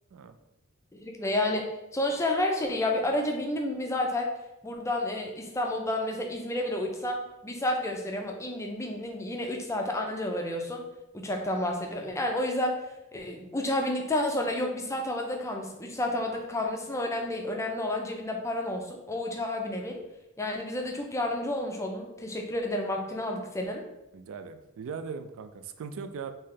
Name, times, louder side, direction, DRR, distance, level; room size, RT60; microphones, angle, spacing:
voice 1, 0.9-4.3 4.6-10.8 11.1-12.8 13.1-20.0 20.4-23.8, left 1 dB, 15° left, 2 dB, 0.4 m, -30 dB
voice 2, 24.1-26.3, right 5 dB, 60° right, 8 dB, 0.3 m, -39 dB
3.1 x 2.7 x 3.8 m, 0.94 s
head